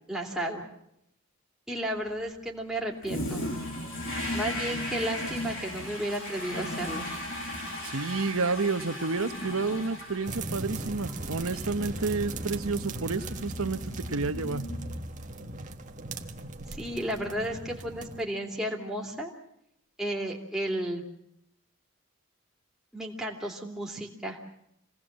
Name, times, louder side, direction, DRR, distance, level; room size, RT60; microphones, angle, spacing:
voice 1, 0.1-0.7 1.7-3.5 4.3-7.1 16.7-19.3 20.0-21.0 22.9-24.4, right 1 dB, ahead, -1 dB, 2.9 m, -33 dB
Toilet flush, 3.0-15.4, left 1 dB, 60° left, 8.0 m, -37 dB
voice 2, 7.8-14.7, right 3 dB, 85° right, 11 dB, 1.0 m, -30 dB
sound 1, 10.3-18.2, right 2 dB, 35° right, 1.5 m, -39 dB
27.0 x 18.5 x 7.5 m, 0.78 s
head